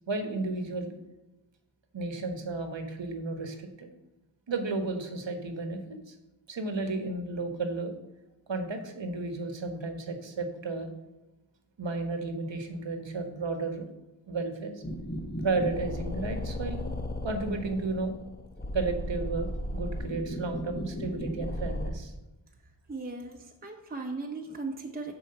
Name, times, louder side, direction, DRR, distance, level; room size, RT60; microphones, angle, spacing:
voice 1, 0.1-0.9 1.9-3.9 4.5-5.8 6.1-6.2 6.5-7.9 8.5-10.9 11.8-13.9 14.3-14.8 15.4-16.8 17.2-18.1 18.7-22.1, right 3 dB, 70° right, 6 dB, 1.2 m, -33 dB
sound 1, 14.8-21.9, left 1 dB, 20° left, 0.8 m, -35 dB
voice 2, 22.9-25.1, right 3 dB, 20° right, 2 dB, 0.9 m, -37 dB
8.1 x 4.5 x 6.7 m, 0.99 s
wide cardioid pair, 75°, 46 cm